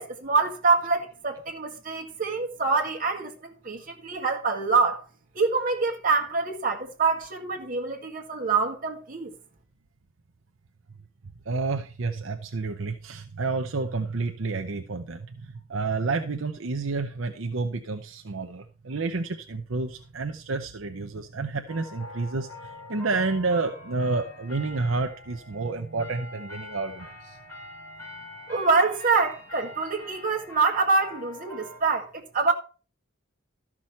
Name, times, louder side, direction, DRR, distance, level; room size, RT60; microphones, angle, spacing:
voice 1, 0.0-5.0 5.4-9.3 28.5-32.5, right 4 dB, 40° right, 1.9 m, -25 dB
voice 2, 11.5-27.4, right 3 dB, 70° right, 0.8 m, -30 dB
sound 1, 21.7-31.8, left 1 dB, 10° left, 4.0 m, -44 dB
13.0 x 6.1 x 4.3 m
head